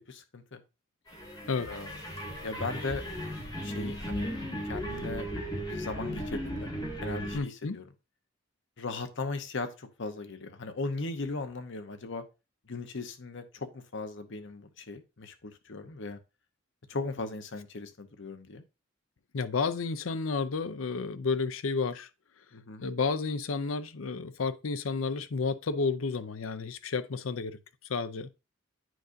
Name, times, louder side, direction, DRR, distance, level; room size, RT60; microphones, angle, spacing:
voice 1, 0.1-0.6 1.7-1.9 2.4-3.0 3.6-4.3 4.6-5.3 5.6-6.7 7.0-7.9 8.8-12.2 12.7-16.2 16.9-18.6 22.5-22.9, left 3 dB, 60° left, 0.9 m, -38 dB
sound 1, 1.1-7.4, equal, 20° left, 2.1 m, -36 dB
voice 2, 7.3-7.8 19.3-22.1 22.8-27.6 27.9-28.3, left 4 dB, 75° left, 0.6 m, -31 dB
9.1 x 5.1 x 2.6 m
head